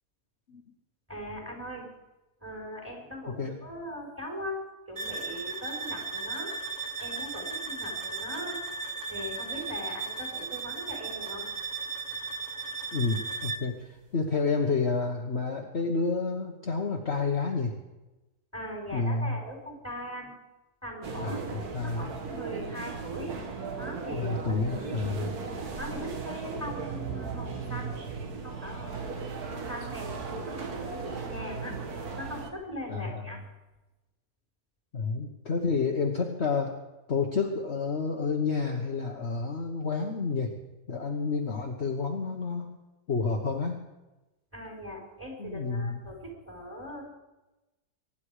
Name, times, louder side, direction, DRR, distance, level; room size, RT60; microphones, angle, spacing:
voice 1, 1.1-1.8 2.4-4.6 4.9-6.5 7.0-8.6 9.1-11.5 18.5-20.3 20.8-21.4 21.7-23.3 23.7-24.6 25.8-28.0 28.4-28.9 29.4-31.8 32.2-33.4 44.5-47.0, equal, 10° right, 0 dB, 4.5 m, -40 dB
sound 1, 5.0-13.8, right 4 dB, 35° right, 0.8 m, -36 dB
voice 2, 12.9-17.8 18.9-19.4 21.2-22.2 24.1-25.4 32.9-33.4 34.9-36.7 37.1-40.5 40.9-42.8 43.1-43.9 45.4-46.0, left 4 dB, 45° left, 1 dB, 1.5 m, -30 dB
sound 2, 21.0-32.5, right 4 dB, 65° right, 1.9 m, -37 dB
23.5 x 10.5 x 4.9 m, 1.0 s
omnidirectional pair, 1.8 m